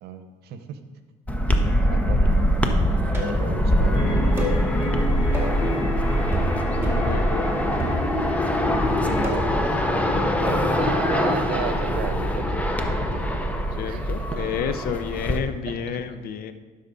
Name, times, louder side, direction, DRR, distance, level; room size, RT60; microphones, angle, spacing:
voice 1, 0.0-0.8 1.9-2.5 3.1-4.6 9.9-13.1 13.9-14.4 15.7-16.0, right 8 dB, 75° right, 9 dB, 0.8 m, -35 dB
sound 1, 1.3-15.4, equal, 10° left, 0.7 m, -23 dB
sound 2, 3.1-3.5 4.4-4.6 5.3-5.6 6.3-6.6 6.8-7.1 7.8-8.4 9.2-9.6 10.5-10.7, equal, 15° right, 2.2 m, -31 dB
sound 3, 3.9-9.2, left 1 dB, 40° left, 1.4 m, -32 dB
voice 2, 6.8-7.5 13.8-16.5, left 7 dB, 60° left, 10 dB, 0.6 m, -30 dB
11.5 x 5.7 x 4.0 m, 1.4 s
cardioid pair, 110°, 17 cm